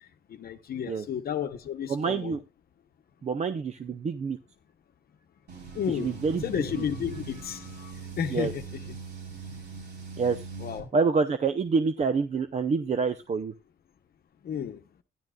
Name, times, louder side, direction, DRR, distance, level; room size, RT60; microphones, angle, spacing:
voice 1, 0.3-2.4 5.7-6.2 6.4-8.8 10.6-10.9 14.4-14.8, left 8 dB, 60° left, 0.9 m, -32 dB
voice 2, 1.9-2.4 3.2-4.4 6.0-6.4 6.8-6.9 8.3-8.5 10.2-10.5 10.9-13.5, right 5 dB, 40° right, 0.7 m, -27 dB
sound 1, 5.5-10.8, right 4 dB, 75° right, 4.3 m, -41 dB
13.5 x 10.5 x 2.4 m
cardioid pair, 125°, 18 cm